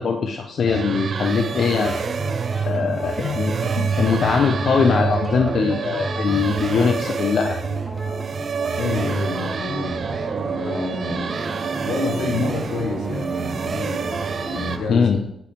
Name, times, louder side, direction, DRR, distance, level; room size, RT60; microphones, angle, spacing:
voice 1, 0.0-2.0 2.6-7.6 14.9-15.2, left 5 dB, 60° left, 4 dB, 0.7 m, -21 dB
sound 1, 0.7-14.8, right 6 dB, 50° right, 0.4 m, -27 dB
sound 2, 1.5-14.8, equal, 5° right, 1.4 m, -34 dB
voice 2, 8.8-10.1 10.5-14.1 14.5-15.1, left 3 dB, 90° left, 4 dB, 1.2 m, -28 dB
sound 3, 8.9-14.9, right 2 dB, 25° right, 1.2 m, -37 dB
9.4 x 4.9 x 3.4 m, 0.78 s
cardioid pair, 110°, 0 cm